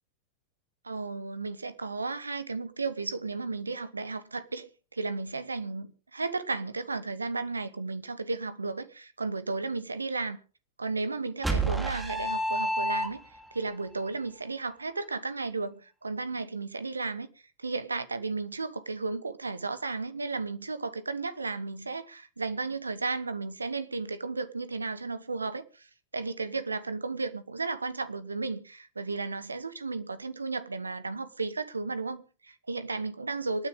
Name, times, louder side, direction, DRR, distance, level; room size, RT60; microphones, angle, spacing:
voice 1, 0.8-10.4 10.8-13.2 13.5-17.3 17.6-25.9 26.1-33.7, right 3 dB, 80° right, 1.2 m, -34 dB
sound 1, 11.4-13.5, right 1 dB, 5° right, 3.5 m, -29 dB
26.0 x 9.7 x 3.7 m
figure-of-eight pair, 90°, 0 cm